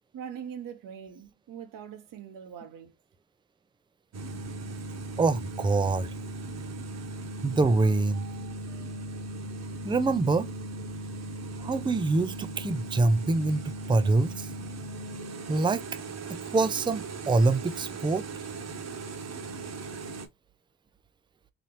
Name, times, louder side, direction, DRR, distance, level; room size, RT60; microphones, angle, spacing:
voice 1, 0.1-3.0, right 8 dB, 75° right, 1.0 m, -42 dB
sound 1, 4.1-20.3, right 2 dB, 50° right, 1.1 m, -38 dB
voice 2, 5.2-6.1 7.4-8.2 9.8-10.5 11.6-14.5 15.5-15.8 16.5-18.2, right 3 dB, 15° right, 0.5 m, -25 dB
4.1 x 2.8 x 3.0 m
supercardioid pair, 70°, 33 cm